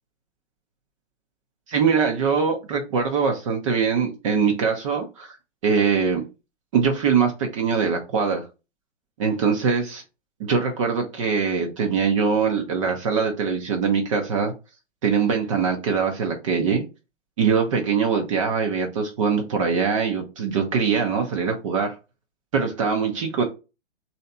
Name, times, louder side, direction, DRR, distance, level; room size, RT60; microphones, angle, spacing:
voice 1, 1.7-5.4 5.6-6.3 6.7-8.5 9.2-10.0 10.4-14.5 15.0-16.8 17.4-21.9 22.5-23.4, right 6 dB, 30° right, 3 dB, 0.6 m, -22 dB
3.2 x 2.8 x 4.0 m, 0.28 s
figure-of-eight pair, 125°, 35 cm